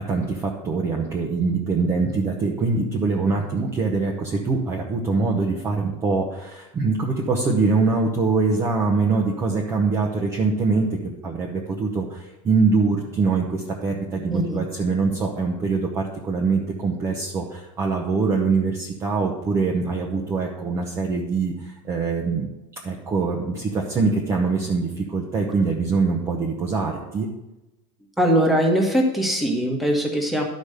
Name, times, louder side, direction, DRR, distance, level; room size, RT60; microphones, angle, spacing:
voice 1, 0.0-22.5 22.8-27.3, right 4 dB, 15° right, -1 dB, 0.9 m, -23 dB
voice 2, 14.3-14.6 28.2-30.4, equal, ahead, 0 dB, 1.5 m, -21 dB
12.0 x 5.3 x 6.5 m, 0.99 s
supercardioid pair, 165°, 16 cm